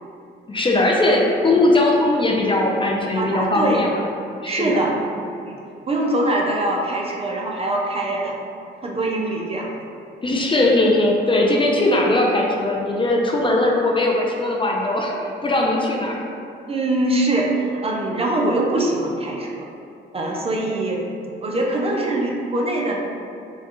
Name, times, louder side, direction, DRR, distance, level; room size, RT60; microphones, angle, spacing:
voice 1, 0.5-4.0 4.4-4.8 10.2-16.2, left 2 dB, 25° left, -1 dB, 0.5 m, -19 dB
voice 2, 3.1-3.8 4.4-5.0 5.4-5.6 5.9-8.3 8.8-9.7 16.7-17.5 17.8-19.7 20.1-21.1 21.4-23.0, right 1 dB, 30° right, -1 dB, 0.5 m, -23 dB
4.5 x 2.3 x 3.0 m, 2.5 s
cardioid pair, 90°, 20 cm